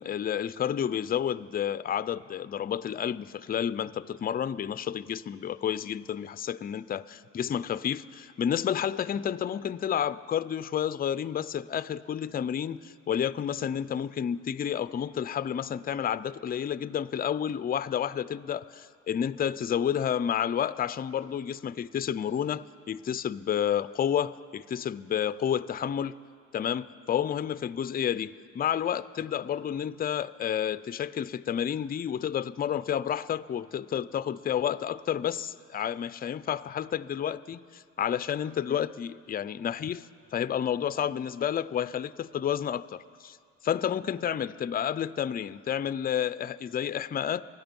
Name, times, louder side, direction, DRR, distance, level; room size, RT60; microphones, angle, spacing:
voice 1, 0.0-26.1 26.5-43.4 43.6-47.4, left 9 dB, 30° left, 15 dB, 0.4 m, -30 dB
27.5 x 9.6 x 5.3 m, 2.2 s
cardioid pair, 90°, 30 cm